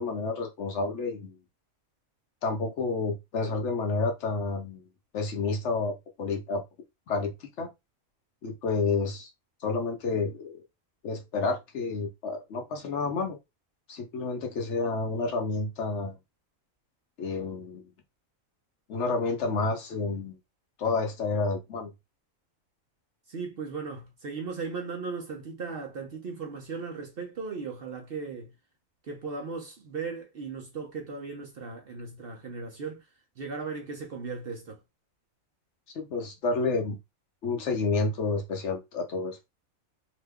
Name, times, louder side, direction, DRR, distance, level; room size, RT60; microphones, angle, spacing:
voice 1, 0.0-1.4 2.4-4.8 5.1-6.6 7.1-7.7 8.4-9.3 9.6-10.6 11.0-13.4 13.9-16.2 17.2-17.8 18.9-20.4 20.8-21.9 35.9-37.0 37.4-39.4, left 3 dB, 65° left, 0.9 m, -30 dB
voice 2, 23.3-28.5 29.0-33.1 33.4-34.8, right 4 dB, 55° right, 0.7 m, -37 dB
2.9 x 2.2 x 3.4 m
omnidirectional pair, 1.4 m